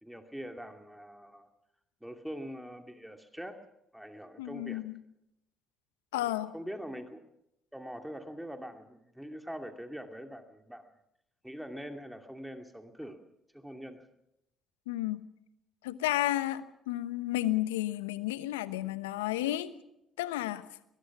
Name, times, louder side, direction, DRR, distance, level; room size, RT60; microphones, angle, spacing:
voice 1, 0.0-1.5 2.0-3.6 3.9-4.8 6.1-7.2 7.7-10.9 11.4-13.2 13.5-14.1, equal, 5° right, 5 dB, 2.5 m, -43 dB
voice 2, 4.4-5.0 6.1-6.5 14.9-15.2 15.8-16.6 16.9-19.7 20.2-20.6, left 15 dB, 85° left, 14 dB, 1.0 m, -32 dB
22.0 x 21.0 x 6.1 m, 0.82 s
hypercardioid pair, 55°, 0 cm